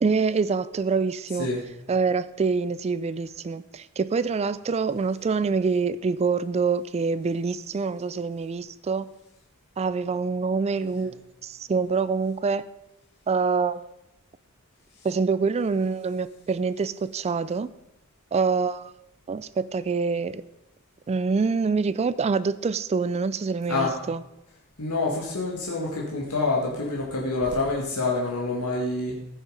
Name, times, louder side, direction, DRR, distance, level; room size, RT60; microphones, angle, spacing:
voice 1, 0.0-1.5 1.9-9.1 9.8-11.1 11.4-12.6 13.3-13.9 15.0-17.7 18.3-18.9 19.3-20.4 21.1-24.2, right 4 dB, 30° right, 16 dB, 0.3 m, -25 dB
voice 2, 1.4-1.7 23.7-24.0 24.8-29.2, left 3 dB, 90° left, -3 dB, 1.7 m, -27 dB
15.0 x 6.6 x 5.0 m, 0.90 s
head